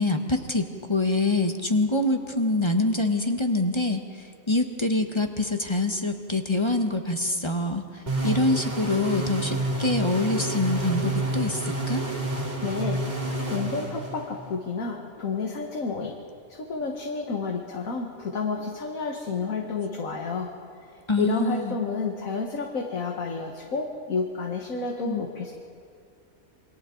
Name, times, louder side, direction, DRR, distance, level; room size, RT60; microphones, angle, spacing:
voice 1, 0.0-12.0 21.1-21.8 25.0-25.3, left 2 dB, 20° left, 5 dB, 1.0 m, -25 dB
sound 1, 8.1-14.5, right 2 dB, 30° right, 2.5 m, -29 dB
voice 2, 12.6-13.0 13.5-16.2 16.5-20.5 21.2-25.5, left 4 dB, 70° left, 1 dB, 1.9 m, -30 dB
28.0 x 24.5 x 3.9 m, 2.4 s
omnidirectional pair, 1.5 m